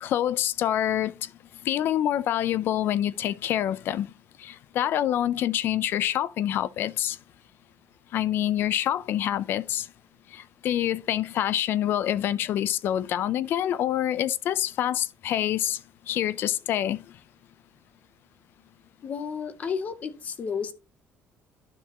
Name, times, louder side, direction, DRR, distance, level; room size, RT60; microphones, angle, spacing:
voice 1, 0.0-1.3 1.6-4.1 4.4-7.2 8.1-9.9 10.3-15.8 16.1-17.0, left 11 dB, 50° left, 0.5 m, -26 dB
voice 2, 19.0-20.7, left 6 dB, 35° left, 0.8 m, -32 dB
11.5 x 6.0 x 2.9 m
cardioid pair, 170°, 5 cm